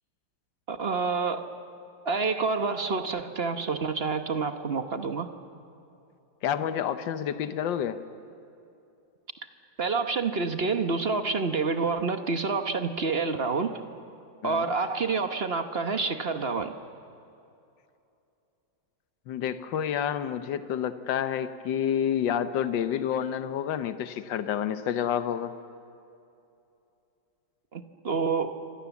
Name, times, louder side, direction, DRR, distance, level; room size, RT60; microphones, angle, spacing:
voice 1, 0.7-1.5 2.0-5.3 9.8-13.8 14.4-16.7 27.7-28.6, right 4 dB, 40° right, 8 dB, 1.1 m, -28 dB
voice 2, 6.4-8.0 14.4-14.6 19.3-25.5, left 9 dB, 75° left, 11 dB, 1.6 m, -29 dB
27.5 x 25.0 x 7.2 m, 2.7 s
omnidirectional pair, 2.0 m